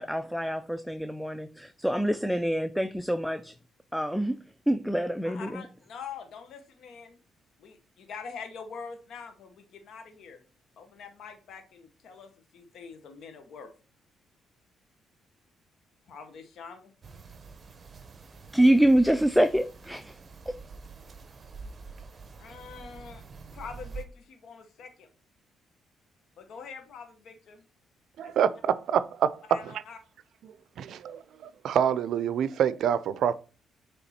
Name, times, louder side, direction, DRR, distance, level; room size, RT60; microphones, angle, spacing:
voice 1, 0.0-3.6 3.9-4.4 4.7-5.6 18.5-20.2 20.5-20.6, right 1 dB, ahead, 0.4 m, -25 dB
voice 2, 5.2-7.2 7.6-10.4 10.8-13.7 16.1-16.9 22.4-23.2 23.5-25.1 26.4-27.6 28.2-28.3 29.5-30.0, left 6 dB, 65° left, 1.0 m, -44 dB
sound 1, 17.0-24.0, right 4 dB, 35° right, 0.8 m, -46 dB
voice 3, 28.2-29.8 30.4-33.3, right 8 dB, 70° right, 0.4 m, -27 dB
6.9 x 3.4 x 4.3 m
cardioid pair, 90°, 0 cm